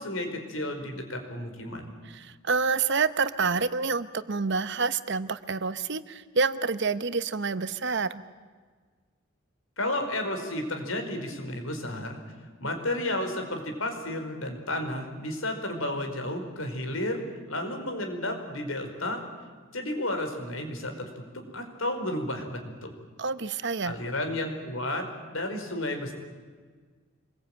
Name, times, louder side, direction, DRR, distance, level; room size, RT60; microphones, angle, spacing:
voice 1, 0.0-1.9 9.8-12.2 12.6-17.2 17.5-19.2 19.7-22.9 23.8-25.1 25.3-26.1, left 1 dB, 85° left, 4 dB, 4.8 m, -32 dB
voice 2, 2.1-8.2 23.2-24.0, right 4 dB, 60° right, 13 dB, 1.0 m, -28 dB
26.0 x 21.0 x 9.0 m, 1.5 s
head